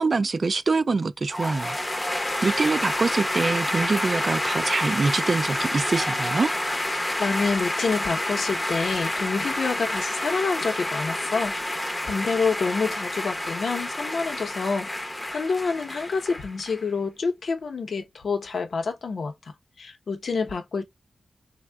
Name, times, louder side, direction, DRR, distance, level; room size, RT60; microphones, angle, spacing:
voice 1, 0.0-1.8 2.4-6.5, right 4 dB, 50° right, 0.3 m, -24 dB
sound 1, 1.3-16.8, left 1 dB, 15° left, 0.6 m, -29 dB
voice 2, 7.0-19.3 19.8-20.8, left 4 dB, 75° left, 0.7 m, -28 dB
3.5 x 2.1 x 2.2 m
wide cardioid pair, 105°, 0 cm